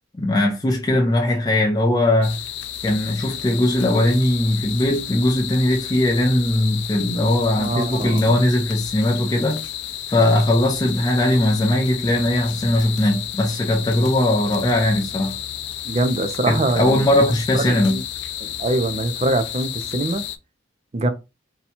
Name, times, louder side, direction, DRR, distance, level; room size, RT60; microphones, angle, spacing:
voice 1, 0.2-2.4 2.8-9.6 10.1-15.4 16.5-18.0, left 1 dB, 20° left, 0.6 m, -19 dB
sound 1, 2.2-20.4, left 11 dB, 65° left, 0.3 m, -32 dB
voice 2, 7.5-8.4 15.8-17.0 17.7-18.0 18.4-20.2 20.9-21.1, right 2 dB, 35° right, 0.4 m, -23 dB
2.7 x 2.3 x 4.1 m
head